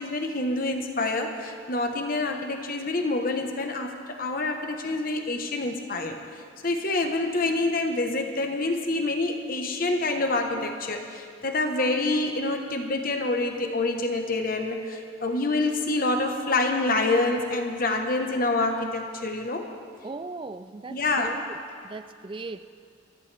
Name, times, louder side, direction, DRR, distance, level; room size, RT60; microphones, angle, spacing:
voice 1, 0.0-19.7 20.9-21.4, left 2 dB, 40° left, 1.1 m, -27 dB
voice 2, 20.0-21.4 21.8-22.7, right 3 dB, 25° right, 0.4 m, -38 dB
25.5 x 14.5 x 3.4 m
head